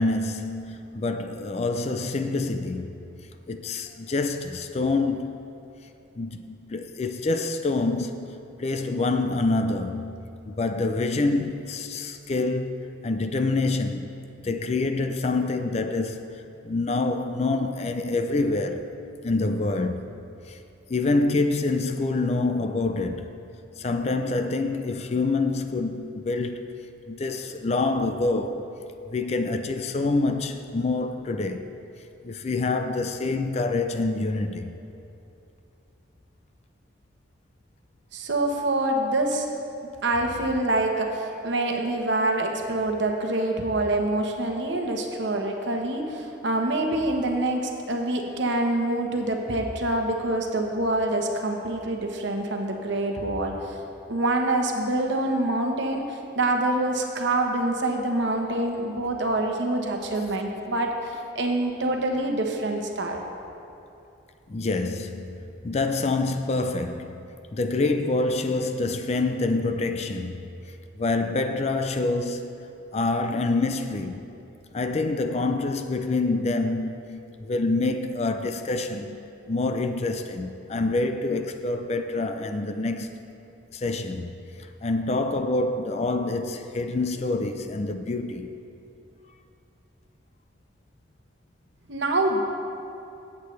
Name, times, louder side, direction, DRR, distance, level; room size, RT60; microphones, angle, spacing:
voice 1, 0.0-3.0 3.5-5.4 6.2-14.1 14.4-18.9 19.2-20.0 20.5-20.6 20.9-23.4 23.8-26.6 27.1-28.7 29.1-31.7 32.2-34.8 64.5-70.6 71.0-72.6 72.9-74.2 74.7-79.2 79.5-83.2 83.7-84.3 84.8-88.5, left 3 dB, 35° left, 0.4 m, -26 dB
voice 2, 38.1-39.5 40.0-53.8 54.1-63.2 91.9-92.4, right 2 dB, 65° right, 1.0 m, -26 dB
14.5 x 8.3 x 3.2 m
head